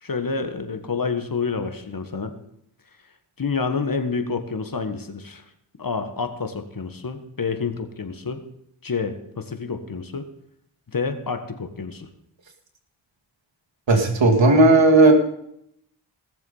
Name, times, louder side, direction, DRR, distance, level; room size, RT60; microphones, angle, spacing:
voice 1, 0.0-2.3 3.4-5.5 5.8-8.4 8.8-10.3 10.9-12.1, left 4 dB, 45° left, 8 dB, 1.5 m, -28 dB
voice 2, 13.9-15.1, right 2 dB, 65° right, 1 dB, 2.6 m, -14 dB
18.0 x 7.3 x 5.5 m, 0.75 s
cardioid pair, 60°, 47 cm